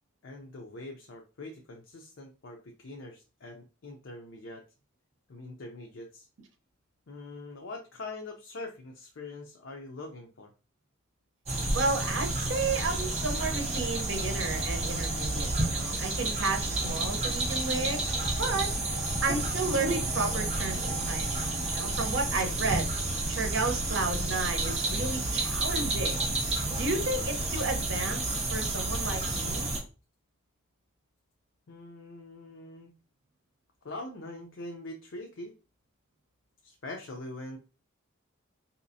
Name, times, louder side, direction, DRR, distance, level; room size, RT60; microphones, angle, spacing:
voice 1, 0.2-4.6 5.3-6.3 7.1-10.5 16.5-16.7 31.7-32.9 33.8-35.5 36.6-37.6, left 2 dB, 65° left, 2 dB, 0.5 m, -43 dB
sound 1, 11.5-29.8, right 2 dB, 30° right, 0.9 m, -30 dB
voice 2, 11.7-18.1 18.4-18.7 19.2-21.4 21.7-22.9 23.3-26.2 26.7-28.2 28.5-29.7, right 3 dB, 65° right, 4 dB, 0.8 m, -32 dB
4.0 x 2.8 x 2.6 m, 0.33 s
head